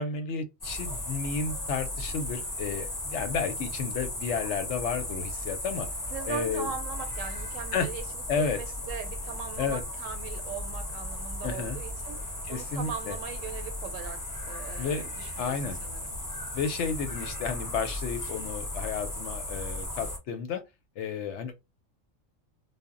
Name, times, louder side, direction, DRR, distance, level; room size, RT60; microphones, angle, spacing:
voice 1, 0.0-5.9 6.3-6.7 7.7-7.9 8.3-8.6 9.6-9.8 11.4-11.8 12.5-13.2 14.8-15.1 15.4-15.8 16.5-20.6 21.0-21.5, left 5 dB, 70° left, 0.8 m, -32 dB
sound 1, 0.6-20.2, left 1 dB, 20° left, 0.6 m, -36 dB
voice 2, 6.1-16.2, right 7 dB, 80° right, 1.0 m, -40 dB
2.1 x 2.0 x 3.6 m
omnidirectional pair, 1.3 m